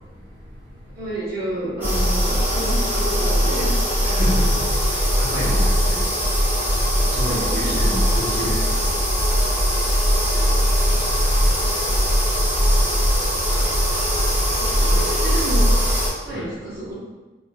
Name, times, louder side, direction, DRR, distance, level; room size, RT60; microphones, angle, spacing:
voice 1, 0.9-3.8 7.1-7.8 10.3-10.4 14.6-15.9 16.2-16.9, right 1 dB, 50° right, -10 dB, 1.0 m, -30 dB
sound 1, 1.8-16.1, equal, 10° right, 0.6 m, -20 dB
voice 2, 4.0-4.6 5.2-6.0 7.1-8.8 14.8-15.1 16.3-16.5, equal, 75° right, -9 dB, 0.9 m, -29 dB
3.0 x 2.5 x 2.3 m, 1.2 s
head